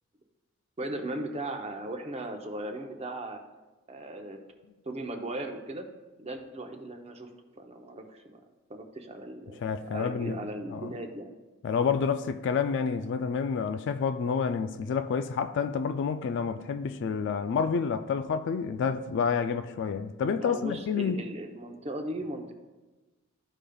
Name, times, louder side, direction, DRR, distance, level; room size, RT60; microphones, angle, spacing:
voice 1, 0.8-3.4 3.9-4.4 4.9-5.9 6.2-7.3 7.6-8.4 8.7-11.3 20.4-22.5, right 1 dB, 30° right, 0.7 m, -37 dB
voice 2, 9.6-10.4 10.7-10.9 11.6-21.2, left 6 dB, 60° left, 0.3 m, -29 dB
13.0 x 5.0 x 2.3 m
head